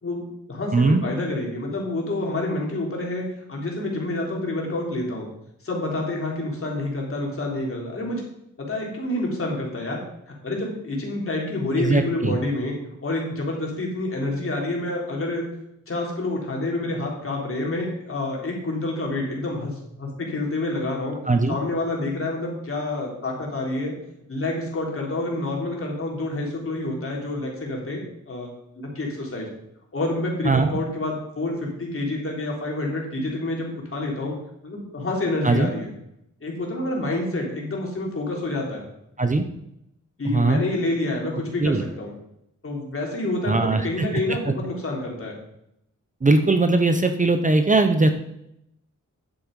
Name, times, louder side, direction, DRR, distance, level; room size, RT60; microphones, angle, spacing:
voice 1, 0.0-5.3 5.6-8.2 8.6-10.0 10.4-12.7 13.0-15.4 15.9-21.2 21.5-23.9 24.3-28.5 28.8-29.5 29.9-34.3 34.6-35.9 36.4-38.8 40.2-42.1 42.6-45.4, left 2 dB, 45° left, -1 dB, 3.6 m, -28 dB
voice 2, 0.7-1.0 11.8-12.3 21.3-21.6 30.4-30.7 35.4-35.7 39.2-39.4 40.2-40.6 41.6-41.8 43.4-43.9 46.2-48.1, right 3 dB, 25° right, 8 dB, 0.8 m, -19 dB
10.5 x 7.6 x 5.3 m, 0.79 s
wide cardioid pair, 120°, 31 cm